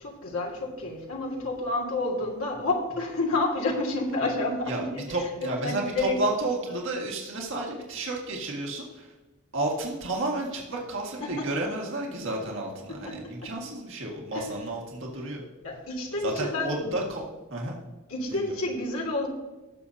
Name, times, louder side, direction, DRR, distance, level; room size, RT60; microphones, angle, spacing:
voice 1, 0.0-5.0 5.6-6.2 11.2-11.5 12.9-13.5 14.3-14.4 15.6-16.9 18.1-19.3, left 2 dB, 80° left, -2 dB, 2.0 m, -29 dB
voice 2, 4.7-9.1 9.5-15.4 16.2-17.8 18.3-18.6, right 2 dB, 60° right, -1 dB, 1.9 m, -31 dB
16.5 x 7.0 x 2.8 m, 1.1 s
head